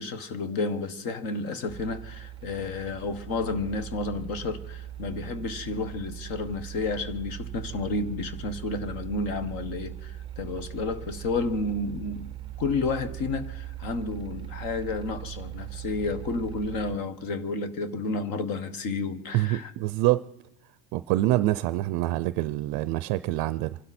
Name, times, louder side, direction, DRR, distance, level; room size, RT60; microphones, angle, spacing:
voice 1, 0.0-12.3 12.6-19.7, left 3 dB, 50° left, 1.5 m, -31 dB
sound 1, 1.7-17.0, right 13 dB, 10° right, 0.6 m, -40 dB
voice 2, 19.3-20.3 20.9-23.8, right 16 dB, 55° right, 0.5 m, -26 dB
26.5 x 12.0 x 4.3 m
cardioid pair, 160°, 44 cm